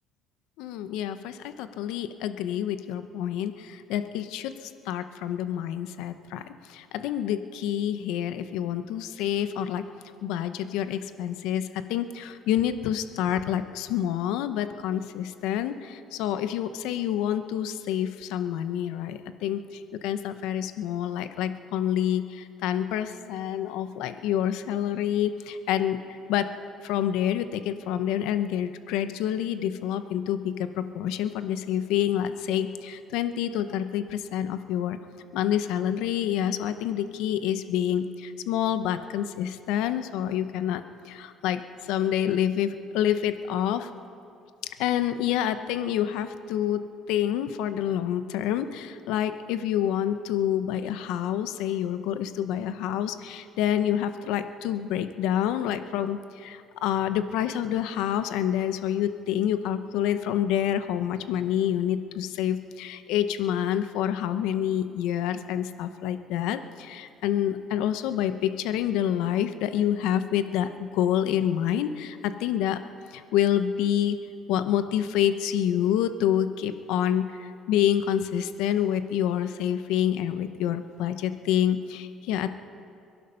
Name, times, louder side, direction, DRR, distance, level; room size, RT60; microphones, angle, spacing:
voice 1, 0.6-4.5 4.9-6.4 6.7-9.9 10.2-19.6 20.0-26.0 26.3-26.5 26.8-35.0 35.3-40.8 41.1-41.6 41.9-43.9 44.8-46.8 47.1-72.8 73.1-74.2 74.5-82.6, left 10 dB, 85° left, 11 dB, 0.7 m, -27 dB
22.5 x 11.0 x 5.7 m, 2.5 s
cardioid pair, 115°, 0 cm